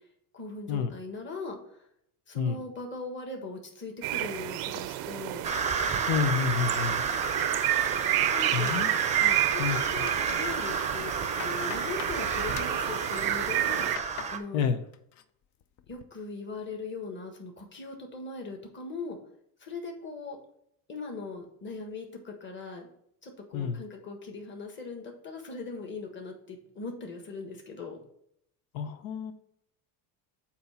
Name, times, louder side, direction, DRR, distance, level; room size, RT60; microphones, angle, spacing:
voice 1, 0.3-1.9 2.3-5.5 8.3-8.7 9.2-14.6 15.9-19.2 19.6-20.4 20.9-22.9 23.2-28.0, left 3 dB, 30° left, 2 dB, 1.5 m, -40 dB
sound 1, 4.0-14.0, right 14 dB, 60° right, 0.5 m, -31 dB
sound 2, 5.4-14.4, right 5 dB, 15° right, 0.6 m, -30 dB
voice 2, 6.1-7.0 8.5-8.9 9.6-9.8 14.5-14.8 23.5-23.8 28.7-29.3, left 7 dB, 90° left, 9 dB, 0.8 m, -28 dB
sound 3, 8.7-9.5 9.8-10.5 11.0-12.2 12.5-12.8 13.5-14.4 14.7-15.2 15.6-16.0, left 10 dB, 45° left, 0.5 m, -44 dB
8.4 x 2.9 x 5.6 m, 0.71 s
cardioid pair, 140°, 41 cm